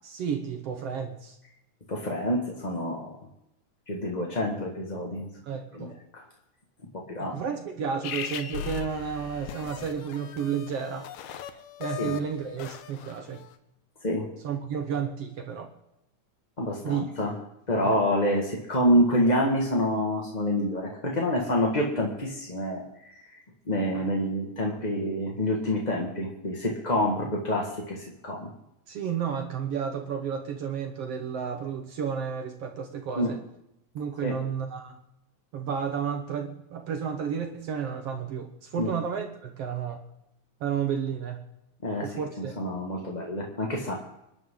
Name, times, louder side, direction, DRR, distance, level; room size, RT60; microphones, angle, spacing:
voice 1, 0.0-1.4 5.5-5.9 7.2-11.1 11.8-13.4 14.4-15.7 16.8-17.1 17.8-18.0 28.9-33.4 34.0-35.0 35.5-40.0 40.6-41.4 42.0-42.6, right 7 dB, 60° right, 5 dB, 1.9 m, -32 dB
voice 2, 1.9-3.1 3.9-5.3 5.7-5.9 6.1-6.2 6.9-7.4 12.0-12.1 14.0-14.3 16.6-17.3 17.7-23.2 23.7-28.5 33.2-33.3 34.2-34.4 38.8-38.9 41.8-42.1 42.4-43.9, equal, 20° left, -1 dB, 1.2 m, -27 dB
sound 1, 8.0-13.5, left 9 dB, 75° left, 2.2 m, -38 dB
26.5 x 11.0 x 3.8 m, 0.85 s
omnidirectional pair, 3.5 m